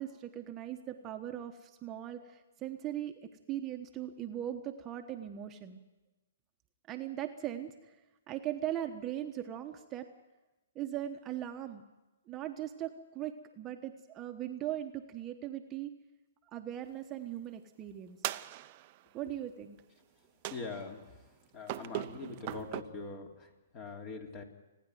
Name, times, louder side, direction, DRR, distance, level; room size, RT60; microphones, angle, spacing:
voice 1, 0.0-5.8 6.9-8.0 8.3-10.1 10.7-11.8 12.3-15.9 16.5-18.2 19.1-19.8, right 11 dB, 20° right, 5 dB, 1.1 m, -39 dB
sound 1, 18.2-19.1 20.4-21.0 21.7-22.8, right 17 dB, 40° right, 0.7 m, -39 dB
voice 2, 20.5-21.2 21.5-24.4, left 4 dB, 30° left, 3 dB, 3.1 m, -43 dB
29.0 x 10.0 x 9.3 m, 1.1 s
hypercardioid pair, 135°, 0 cm